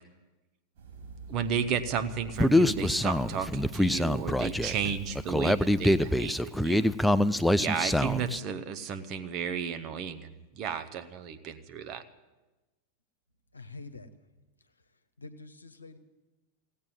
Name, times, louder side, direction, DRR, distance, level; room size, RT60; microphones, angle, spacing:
sound 1, 0.8-6.3, right 4 dB, 55° right, 4.6 m, -45 dB
voice 1, 1.3-6.8 7.6-12.0, right 7 dB, 35° right, 10 dB, 1.0 m, -33 dB
Human voice, 2.4-8.4, left 1 dB, ahead, 0.4 m, -25 dB
voice 2, 13.5-14.1 15.2-16.0, left 3 dB, 80° left, 9 dB, 1.0 m, -45 dB
16.5 x 8.7 x 9.3 m, 1.1 s
figure-of-eight pair, 90°, 0 cm